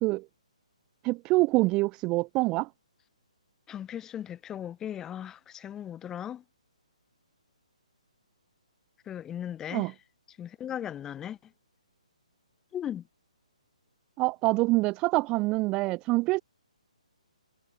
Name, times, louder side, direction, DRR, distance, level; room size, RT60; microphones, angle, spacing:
voice 1, 1.0-2.7 9.7-9.9 14.2-16.4, right 22 dB, 20° right, 0.3 m, -25 dB
voice 2, 3.7-6.4 9.1-9.9 10.4-11.5 12.7-13.0, left 10 dB, 15° left, 4.1 m, -37 dB
hypercardioid pair, 145°, 4 cm